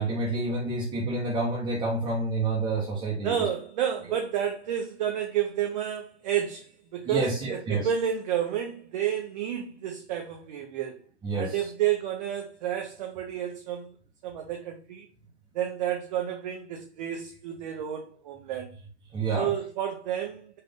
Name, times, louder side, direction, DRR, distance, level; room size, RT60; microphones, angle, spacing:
voice 1, 0.0-3.5 7.1-7.9 11.2-11.6 19.1-19.5, right 3 dB, 10° right, 0.9 m, -28 dB
voice 2, 3.2-11.0 11.3-13.9 14.2-15.1 15.5-18.7 19.4-20.6, right 9 dB, 40° right, 0.7 m, -30 dB
4.1 x 2.4 x 3.8 m
figure-of-eight pair, 115°, 34 cm